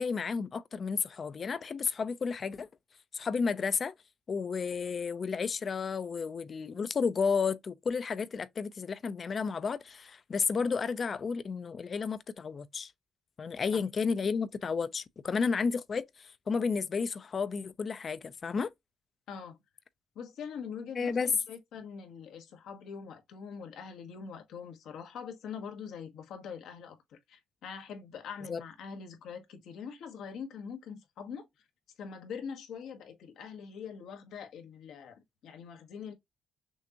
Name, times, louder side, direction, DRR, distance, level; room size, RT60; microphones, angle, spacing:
voice 1, 0.0-2.7 3.1-3.9 4.3-12.9 13.4-18.7 21.0-21.3 28.5-28.6, left 5 dB, 45° left, 0.6 m, -32 dB
voice 2, 20.1-31.5 32.0-36.1, left 6 dB, 80° left, 1.3 m, -43 dB
6.3 x 2.5 x 2.9 m
cardioid pair, 90°, 0 cm